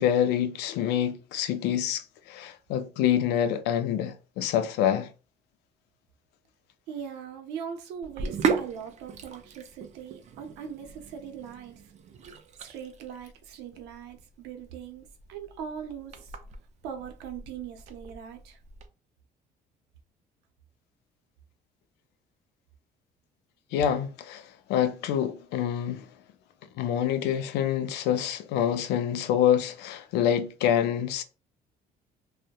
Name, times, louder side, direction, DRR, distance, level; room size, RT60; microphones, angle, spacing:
voice 1, 0.0-5.1 23.7-26.1 26.8-31.2, left 9 dB, 85° left, 0.4 m, -26 dB
voice 2, 6.9-11.9 12.6-16.4 16.8-18.6, right 8 dB, 90° right, 0.6 m, -40 dB
Sink (filling or washing), 8.0-18.9, right 5 dB, 45° right, 0.4 m, -36 dB
2.7 x 2.1 x 2.2 m
cardioid pair, 110°, 17 cm